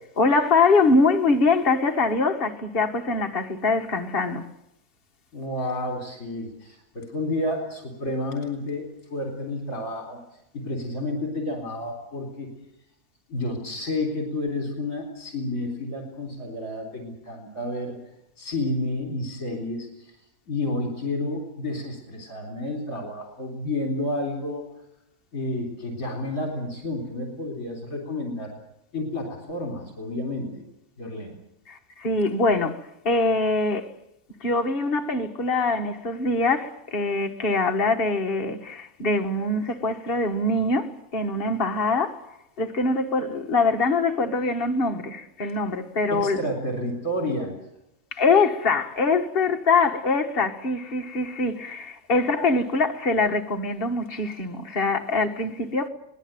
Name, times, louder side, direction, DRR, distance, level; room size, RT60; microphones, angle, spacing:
voice 1, 0.2-4.5 31.7-33.9 34.4-42.2 42.6-46.4 48.1-55.9, left 3 dB, 35° left, 1.8 m, -23 dB
voice 2, 5.3-10.2 10.5-12.5 13.3-18.0 18.4-20.2 20.5-24.6 25.3-28.6 28.9-30.6 31.0-31.4 46.1-47.6, left 1 dB, 60° left, 4.4 m, -30 dB
23.5 x 18.5 x 9.1 m
omnidirectional pair, 1.7 m